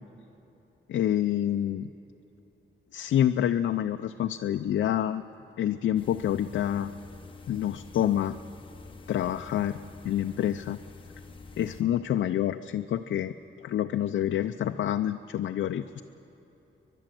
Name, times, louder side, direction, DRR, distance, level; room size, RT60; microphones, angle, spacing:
voice 1, 0.9-1.9 2.9-5.2 5.6-6.9 7.5-8.4 9.1-9.8 10.0-10.8 11.6-13.3 13.6-16.0, left 11 dB, 65° left, 6 dB, 0.5 m, -27 dB
sound 1, 5.9-11.8, left 4 dB, 25° left, 1.0 m, -47 dB
29.5 x 11.5 x 7.7 m, 3.0 s
wide cardioid pair, 175°, 20 cm